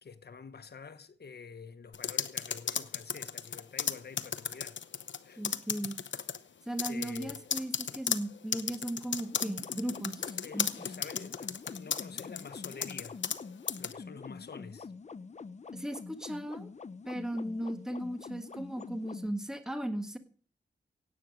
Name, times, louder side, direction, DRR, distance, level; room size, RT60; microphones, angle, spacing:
voice 1, 0.0-4.8 5.2-5.4 6.9-7.5 10.4-13.2 13.7-14.9, left 5 dB, 60° left, 1.2 m, -48 dB
sound 1, 1.9-5.2 5.4-6.4 6.8-13.4 13.7-13.9, left 7 dB, 85° left, 0.9 m, -34 dB
voice 2, 5.4-6.0 6.7-10.7 15.7-16.7 17.0-20.2, right 1 dB, 5° right, 1.6 m, -37 dB
sound 2, 9.3-19.3, left 4 dB, 40° left, 0.6 m, -46 dB
17.0 x 8.5 x 6.4 m
wide cardioid pair, 110°, 19 cm